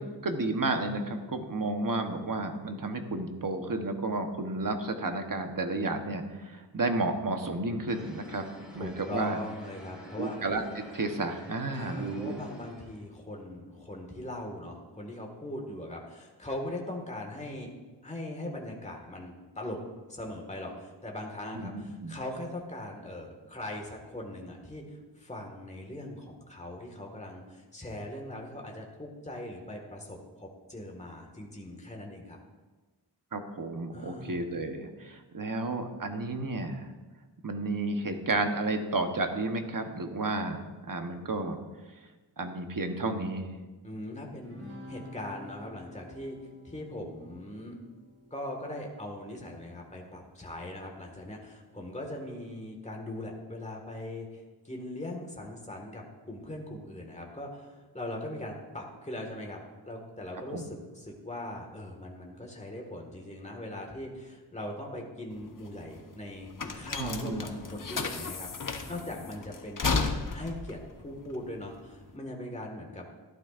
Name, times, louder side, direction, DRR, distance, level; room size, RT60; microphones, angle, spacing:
voice 1, 0.0-9.4 10.2-12.4 21.5-22.2 33.3-36.9 37.4-41.6 42.4-43.5 60.5-60.6 67.0-67.7, right 2 dB, 50° right, 5 dB, 1.1 m, -32 dB
sound 1, 7.9-13.1, equal, ahead, 3.6 m, -49 dB
voice 2, 8.7-10.4 11.7-17.7 18.0-19.8 20.1-32.4 33.9-34.4 43.8-44.6 44.9-46.4 46.6-47.7 48.3-73.1, left 1 dB, 15° left, 1 dB, 1.7 m, -40 dB
sound 2, 44.4-50.1, left 1 dB, 35° right, 3.3 m, -50 dB
sound 3, 65.3-72.1, left 4 dB, 50° left, 0.9 m, -34 dB
14.5 x 11.5 x 2.5 m, 1.3 s
wide cardioid pair, 85°, 41 cm